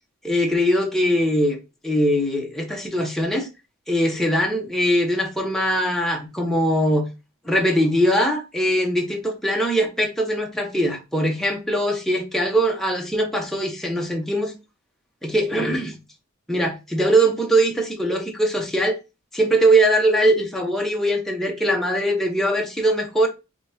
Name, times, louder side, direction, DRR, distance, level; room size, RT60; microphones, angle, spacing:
voice 1, 0.2-1.6 1.8-3.5 3.9-7.1 7.4-14.5 15.2-16.0 16.5-19.0 19.3-23.3, right 1 dB, ahead, 0.8 m, -21 dB
5.1 x 2.4 x 2.7 m
head